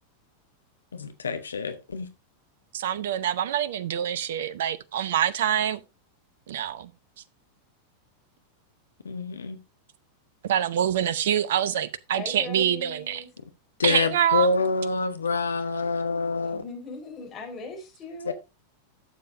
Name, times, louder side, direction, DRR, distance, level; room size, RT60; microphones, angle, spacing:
voice 1, 0.9-2.1 9.0-9.6 13.8-16.6 18.3-18.4, left 4 dB, 70° left, 1.0 m, -27 dB
voice 2, 2.7-5.8 6.5-6.9 10.4-13.2 13.8-14.6, right 10 dB, 60° right, 0.6 m, -25 dB
voice 3, 12.1-13.3 16.5-18.3, left 4 dB, 25° left, 4.4 m, -39 dB
12.5 x 7.4 x 2.6 m
figure-of-eight pair, 90°, 0 cm